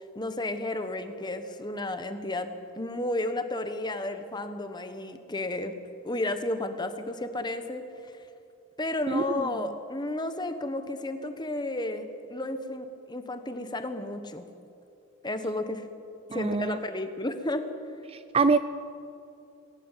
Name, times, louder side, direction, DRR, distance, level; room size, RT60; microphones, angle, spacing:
voice 1, 0.0-5.7 6.0-8.1 8.8-14.5 15.2-15.8 16.3-17.6, left 1 dB, 20° left, 8 dB, 1.3 m, -32 dB
voice 2, 9.1-9.4 16.3-16.8 18.3-18.6, right 4 dB, 25° right, 12 dB, 0.4 m, -24 dB
19.5 x 17.5 x 9.1 m, 2.7 s
head